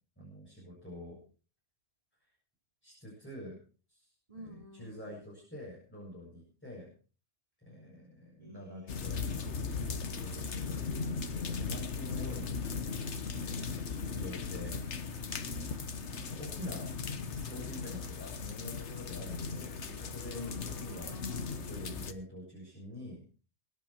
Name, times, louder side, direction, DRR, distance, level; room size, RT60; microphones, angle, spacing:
voice 1, 0.2-1.2 2.8-3.6 3.9-4.1 4.3-6.9 7.6-9.5 10.0-12.9 13.3-14.8 16.1-16.9 17.3-21.2 21.7-23.2, left 1 dB, 10° left, -4 dB, 7.3 m, -46 dB
voice 2, 4.3-5.1 8.4-10.6 20.3-21.7, equal, 30° right, 1 dB, 3.7 m, -51 dB
sound 1, 8.9-22.1, left 5 dB, 85° left, 1.5 m, -37 dB
23.0 x 10.5 x 4.5 m, 0.38 s
omnidirectional pair, 1.1 m